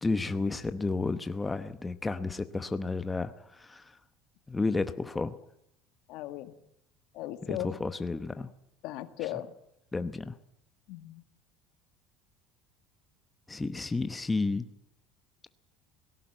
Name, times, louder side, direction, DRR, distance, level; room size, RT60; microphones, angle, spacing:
voice 1, 0.0-3.3 3.6-3.8 4.5-5.3 7.5-8.5 9.9-10.3 13.5-14.6, left 3 dB, 15° left, 10 dB, 0.9 m, -31 dB
voice 2, 6.1-6.5 7.1-7.8 8.8-9.5 10.9-11.2, left 14 dB, 70° left, 10 dB, 1.7 m, -37 dB
18.5 x 16.5 x 9.0 m, 0.77 s
cardioid pair, 135°, 0 cm